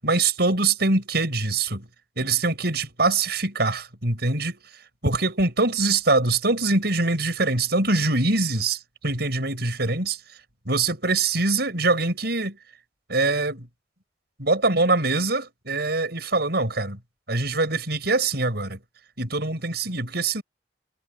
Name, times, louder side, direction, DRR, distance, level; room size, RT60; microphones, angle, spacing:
voice 1, 0.0-1.9 2.2-4.6 5.0-10.2 10.7-12.6 13.1-13.7 14.4-17.0 17.3-18.8 19.2-20.4, right 3 dB, 65° right, 7.6 m, -23 dB
head